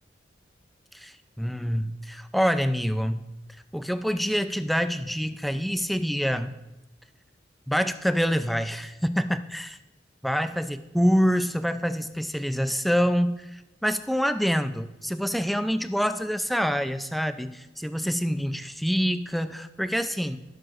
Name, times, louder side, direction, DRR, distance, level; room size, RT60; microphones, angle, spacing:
voice 1, 0.9-3.2 3.7-6.5 7.7-9.8 10.2-20.4, equal, ahead, 10 dB, 0.4 m, -26 dB
21.5 x 7.8 x 2.5 m, 0.99 s
head